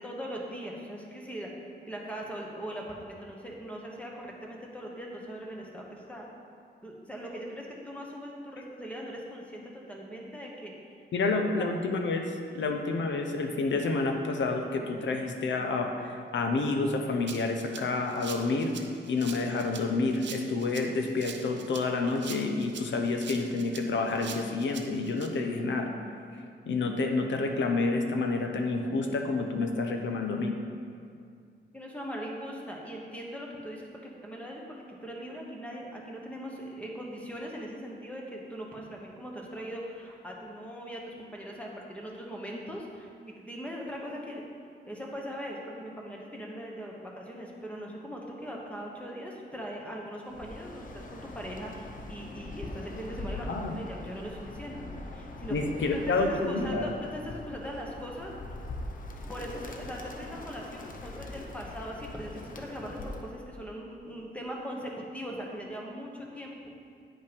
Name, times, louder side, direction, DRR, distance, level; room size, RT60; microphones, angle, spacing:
voice 1, 0.0-1.5 1.9-6.2 6.8-10.7 11.6-11.7 31.7-43.1 43.4-44.4 44.9-58.3 59.3-66.5, equal, 5° left, -2 dB, 1.1 m, -40 dB
voice 2, 11.1-18.8 19.1-25.9 26.7-30.6 53.4-53.7 55.5-56.9, left 3 dB, 90° left, 4 dB, 0.9 m, -29 dB
Rattle (instrument), 17.3-25.3, right 7 dB, 80° right, 0.7 m, -44 dB
Bird, 50.3-63.4, left 2 dB, 50° left, 0.7 m, -42 dB
8.9 x 5.5 x 5.2 m, 2.3 s
wide cardioid pair, 160°, 18 cm